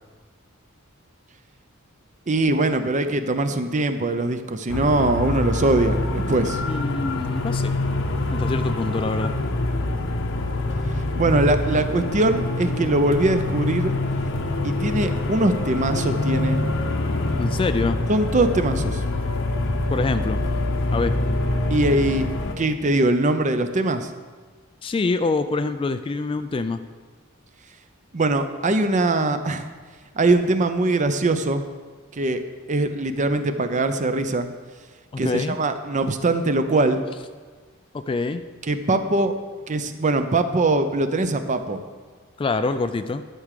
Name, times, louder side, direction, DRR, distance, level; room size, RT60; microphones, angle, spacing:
voice 1, 2.3-6.6 11.1-14.0 14.6-16.6 18.1-19.0 21.7-22.3 22.6-24.1 28.1-29.7 30.2-31.6 32.1-32.4 32.7-34.5 35.2-37.1 38.7-39.3 39.7-41.8, right 2 dB, 35° right, 9 dB, 0.6 m, -22 dB
sound 1, 4.7-22.5, left 2 dB, 60° left, 0.9 m, -25 dB
voice 2, 6.7-7.8 8.3-9.3 17.4-18.0 19.9-20.4 20.9-21.1 24.8-26.8 35.1-35.6 37.9-38.4 42.4-43.2, left 3 dB, 25° left, 10 dB, 0.3 m, -25 dB
12.0 x 4.9 x 6.6 m, 1.4 s
head